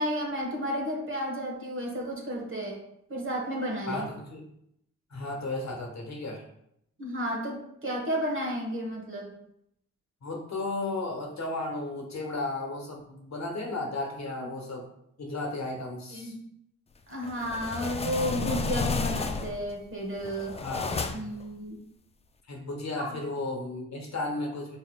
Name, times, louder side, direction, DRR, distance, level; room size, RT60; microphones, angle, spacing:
voice 1, 0.0-2.8 3.1-4.1 7.0-9.3 14.4-14.5 16.1-16.4 17.1-20.6 21.1-21.8 23.0-23.2, equal, 35° right, -1 dB, 1.3 m, -32 dB
voice 2, 3.9-4.4 5.1-6.4 10.2-14.9 15.2-16.4 20.6-21.3 22.5-24.8, left 2 dB, 50° left, 0 dB, 1.2 m, -34 dB
sound 1, 17.2-19.7 20.2-21.4, left 4 dB, 20° left, 0.3 m, -32 dB
4.3 x 3.6 x 2.3 m, 0.76 s
supercardioid pair, 45°, 35 cm